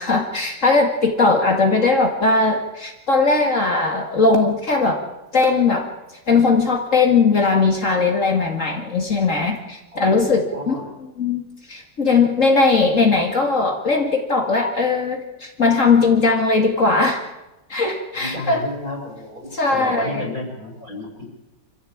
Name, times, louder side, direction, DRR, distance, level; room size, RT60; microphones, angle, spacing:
voice 1, 0.0-5.0 5.3-5.9 6.3-10.7 11.2-11.4 11.7-17.2 17.7-18.6 19.5-20.3, left 3 dB, 45° left, 4 dB, 2.4 m, -19 dB
voice 2, 1.3-1.9 9.9-10.2 10.5-10.9 18.1-21.3, left 2 dB, 50° right, 1 dB, 7.0 m, -32 dB
26.5 x 15.0 x 8.7 m, 1.0 s
omnidirectional pair, 1.9 m